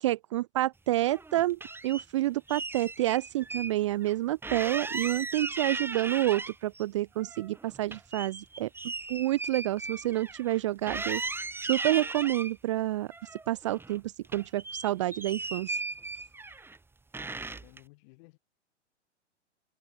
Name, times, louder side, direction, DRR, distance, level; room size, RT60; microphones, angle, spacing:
voice 1, 0.0-8.7 9.1-11.2 11.6-13.1 13.5-14.0 14.3-15.7, right 15 dB, 30° right, 0.3 m, -29 dB
sound 1, 1.0-2.0 2.5-3.7 4.0-4.1 4.4-6.8 7.2-10.6 10.9-12.5 13.1-14.0 14.2-16.8 17.1-17.8, right 3 dB, 5° right, 2.1 m, -37 dB
voice 2, 17.4-18.4, left 26 dB, 40° left, 4.6 m, -56 dB
figure-of-eight pair, 110°, 36 cm